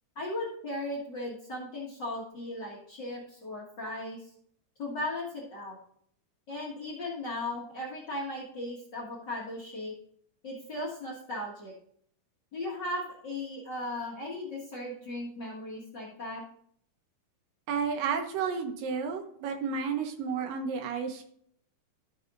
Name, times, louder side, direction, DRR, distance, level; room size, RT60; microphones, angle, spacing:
voice 1, 0.1-4.2 4.8-5.8 6.5-9.9 10.4-11.7 12.5-16.4, left 1 dB, 45° left, -2 dB, 1.5 m, -37 dB
voice 2, 17.7-21.3, right 6 dB, 85° right, 5 dB, 2.9 m, -32 dB
13.0 x 6.6 x 2.5 m, 0.64 s
omnidirectional pair, 3.9 m